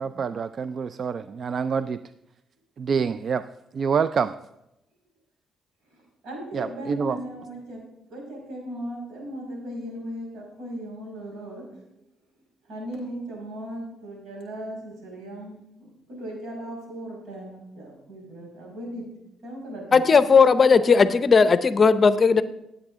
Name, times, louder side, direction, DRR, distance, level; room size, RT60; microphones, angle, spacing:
voice 1, 0.0-2.0 2.8-3.5 3.7-4.3 6.5-7.2, right 6 dB, 50° right, 13 dB, 0.3 m, -26 dB
voice 2, 5.9-7.8 8.1-12.1 12.7-19.1 19.4-20.0, right 1 dB, 80° right, -1 dB, 5.2 m, -37 dB
voice 3, 19.9-22.4, left 5 dB, 40° left, 12 dB, 0.6 m, -17 dB
17.0 x 8.2 x 3.6 m, 0.87 s
cardioid pair, 90°, 0 cm